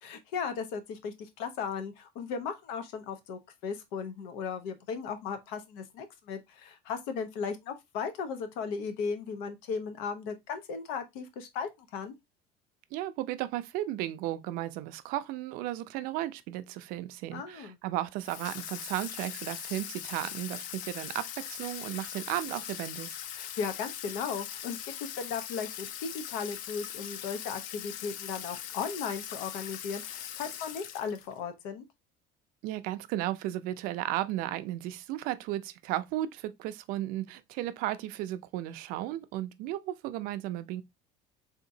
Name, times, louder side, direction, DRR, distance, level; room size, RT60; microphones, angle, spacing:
voice 1, 0.0-12.1 17.3-17.8 23.3-31.8, left 6 dB, 85° left, 0.8 m, -36 dB
voice 2, 12.9-23.2 32.6-40.8, right 14 dB, 60° right, 0.4 m, -34 dB
Water tap faucet / Sink (filling or washing), 18.2-31.4, left 10 dB, 55° left, 0.4 m, -41 dB
3.6 x 2.8 x 2.6 m
cardioid pair, 170°, 17 cm